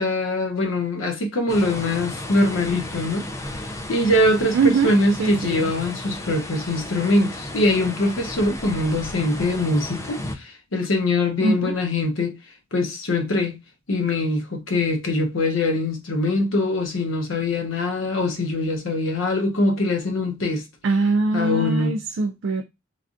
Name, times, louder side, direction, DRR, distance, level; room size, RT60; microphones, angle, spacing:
voice 1, 0.0-3.2 3.9-12.3 12.7-13.6 13.9-20.6 21.3-21.9, left 2 dB, 80° left, 0.8 m, -23 dB
sound 1, 1.5-10.4, left 1 dB, 15° left, 0.3 m, -34 dB
voice 2, 4.5-5.7 11.4-11.7 20.8-22.6, right 3 dB, 65° right, 0.3 m, -22 dB
3.2 x 2.5 x 2.5 m
head